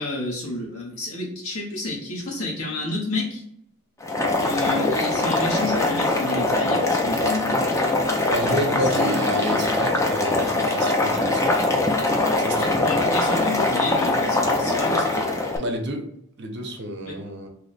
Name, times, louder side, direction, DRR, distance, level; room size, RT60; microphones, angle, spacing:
voice 1, 0.0-3.4 4.4-7.7 8.7-9.4 12.6-15.2 17.0-17.2, left 2 dB, 75° left, -3 dB, 1.0 m, -30 dB
Boiling, 4.0-15.6, left 2 dB, 15° left, 0.3 m, -22 dB
voice 2, 8.3-11.7 12.4-12.9 15.6-16.1 16.4-17.5, equal, 50° right, 4 dB, 0.5 m, -30 dB
2.9 x 2.0 x 4.0 m, 0.74 s
head